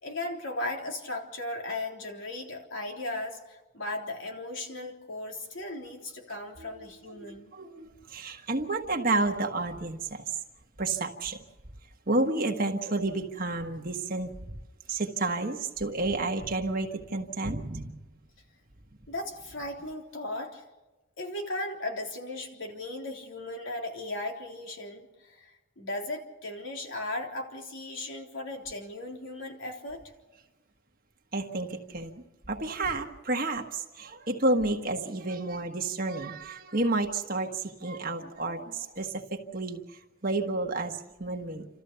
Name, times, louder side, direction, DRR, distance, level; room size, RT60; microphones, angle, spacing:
voice 1, 0.0-7.5 19.1-20.6 21.2-25.5 25.8-30.0, left 2 dB, 80° left, 1 dB, 3.6 m, -36 dB
voice 2, 6.6-10.4 10.8-11.4 11.8-14.6 14.9-18.0 31.3-41.7, right 2 dB, 45° right, 3 dB, 1.4 m, -31 dB
29.5 x 14.0 x 6.9 m, 1.1 s
head